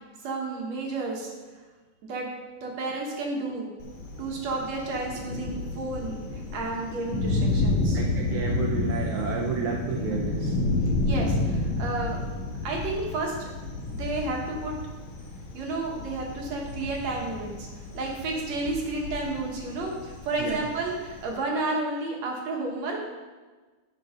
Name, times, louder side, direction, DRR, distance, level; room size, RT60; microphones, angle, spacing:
voice 1, 0.2-1.3 2.0-2.3 2.6-3.7 4.2-8.0 11.0-12.2 12.6-13.5 13.9-14.7 15.5-17.7 17.9-23.2, right 2 dB, 55° right, -1 dB, 2.3 m, -31 dB
Thunder, 3.8-21.3, left 2 dB, 55° left, 2.5 m, -30 dB
voice 2, 7.9-10.5 20.4-20.6, right 6 dB, 70° right, -1 dB, 1.8 m, -31 dB
12.5 x 5.6 x 5.1 m, 1.3 s
omnidirectional pair, 4.4 m